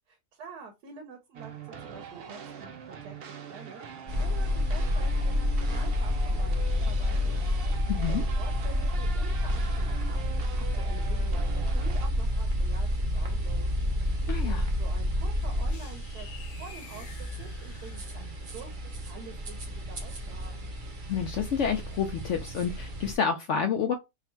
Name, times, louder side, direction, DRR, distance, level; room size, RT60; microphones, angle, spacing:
voice 1, 0.1-6.6 6.9-7.5 8.1-10.2 10.6-13.7 14.4-16.3 16.6-20.7, right 5 dB, 85° right, 1.4 m, -47 dB
sound 1, 1.3-12.1, right 7 dB, 70° right, 0.5 m, -43 dB
sound 2, 4.1-23.1, left 1 dB, 40° right, 0.8 m, -29 dB
voice 2, 7.9-8.2 14.3-14.7 21.1-23.9, left 7 dB, 65° left, 0.7 m, -29 dB
sound 3, 15.7-18.6, left 4 dB, 90° left, 1.4 m, -48 dB
3.5 x 2.4 x 4.3 m
omnidirectional pair, 1.7 m